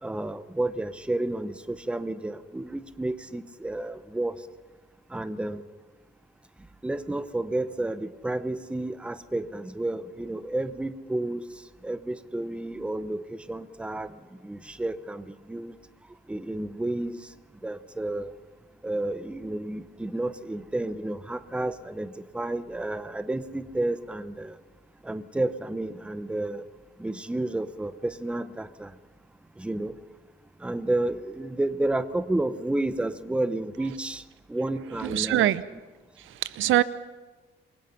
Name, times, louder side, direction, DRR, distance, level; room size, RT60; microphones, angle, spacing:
voice 1, 0.0-4.4 5.1-5.6 6.8-11.4 11.8-15.7 16.3-17.2 17.6-18.3 18.8-24.6 25.0-26.6 27.0-28.9 29.6-29.9 30.6-34.2 34.5-35.5, right 2 dB, 5° right, 12 dB, 0.8 m, -31 dB
voice 2, 35.0-35.6 36.2-36.8, right 14 dB, 80° right, 16 dB, 0.9 m, -24 dB
27.5 x 23.0 x 5.9 m, 1.3 s
cardioid pair, 170°, 20 cm